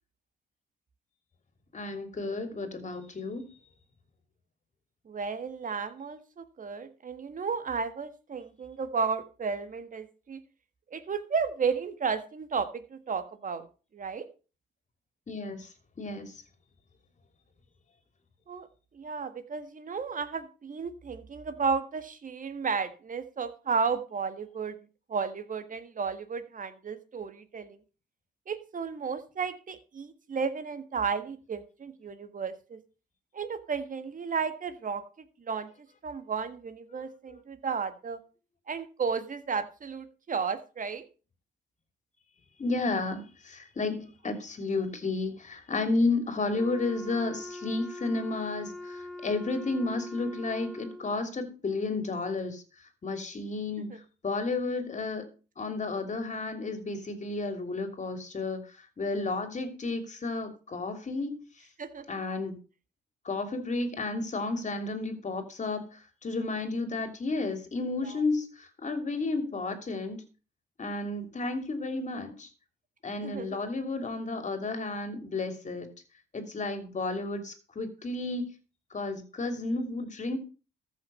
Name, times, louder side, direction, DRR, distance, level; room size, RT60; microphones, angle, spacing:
voice 1, 1.7-3.4 15.3-15.7 16.0-16.4 36.9-37.0 42.6-52.6 53.0-54.0 54.2-55.3 55.6-58.6 59.0-61.4 62.1-62.6 63.2-65.9 66.2-70.2 70.8-72.5 73.0-75.9 76.3-78.5 78.9-80.4, left 3 dB, 35° left, 8 dB, 2.9 m, -32 dB
voice 2, 5.0-10.4 10.9-13.7 13.9-14.3 18.5-18.7 18.9-24.8 25.1-27.7 28.5-32.8 33.3-35.0 35.4-35.7 36.0-38.2 38.7-41.0 53.9-54.0 61.8-62.0 73.2-73.6, right 5 dB, 40° right, 11 dB, 1.7 m, -33 dB
Wind instrument woodwind instrument, 46.6-51.2, left 2 dB, 5° left, 1.4 m, -42 dB
14.0 x 6.4 x 5.5 m, 0.35 s
cardioid pair, 90°, 20 cm